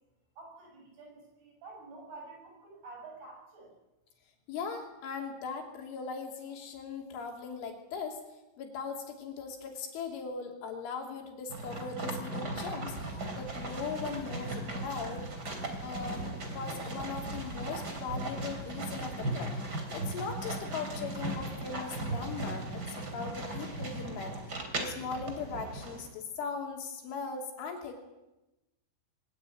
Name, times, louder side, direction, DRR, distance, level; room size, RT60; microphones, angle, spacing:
voice 1, 0.4-3.7, right 3 dB, 55° right, 1 dB, 9.1 m, -49 dB
voice 2, 4.5-8.2 8.6-15.3 15.8-19.5 19.9-28.0, left 5 dB, 75° left, 2 dB, 5.3 m, -39 dB
sound 1, 11.5-26.1, right 2 dB, 25° right, 2.8 m, -37 dB
22.0 x 18.5 x 9.3 m, 0.99 s
omnidirectional pair, 5.7 m